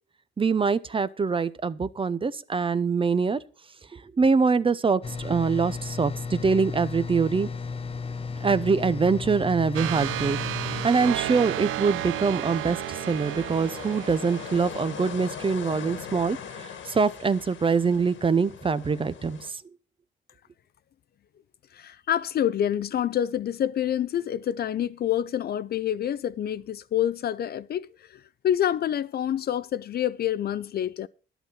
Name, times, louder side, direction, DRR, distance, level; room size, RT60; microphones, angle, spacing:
voice 1, 0.4-3.4 3.9-7.5 8.4-19.4, right 5 dB, 25° right, 0.6 m, -24 dB
sound 1, 5.0-10.9, left 5 dB, 30° left, 0.8 m, -34 dB
sound 2, 9.7-15.3, right 14 dB, 85° right, 0.5 m, -33 dB
sound 3, 10.2-19.5, left 7 dB, 80° left, 1.9 m, -41 dB
voice 2, 21.7-31.1, left 10 dB, 50° left, 0.5 m, -27 dB
11.0 x 8.0 x 5.5 m
cardioid pair, 90°, 20 cm